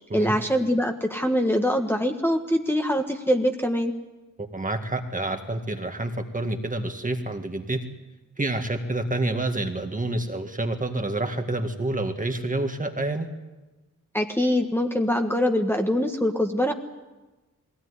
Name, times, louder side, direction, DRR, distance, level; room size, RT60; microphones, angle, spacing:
voice 1, 0.1-3.9 14.1-16.7, equal, 5° left, 2 dB, 1.5 m, -23 dB
voice 2, 4.4-7.8 8.4-13.3, right 2 dB, 25° right, 5 dB, 1.9 m, -28 dB
20.5 x 17.0 x 9.8 m, 1.2 s
wide cardioid pair, 100°, 32 cm